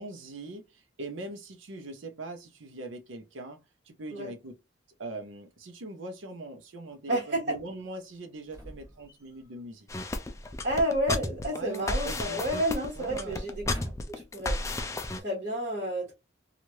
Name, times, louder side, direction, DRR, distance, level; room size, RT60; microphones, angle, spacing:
voice 1, 0.0-4.6 5.0-9.9 11.5-12.4 12.9-13.5, right 2 dB, 85° right, 0.7 m, -41 dB
voice 2, 7.1-7.6 10.6-13.6 14.1-14.9 15.2-16.1, right 1 dB, 40° right, 1.3 m, -30 dB
sound 1, 8.4-9.6 11.2-12.3 12.6-12.8 13.4-14.3 15.0-15.1, equal, 15° right, 1.4 m, -47 dB
sound 2, 9.9-15.2, left 2 dB, 15° left, 0.3 m, -33 dB
3.1 x 2.4 x 2.7 m
head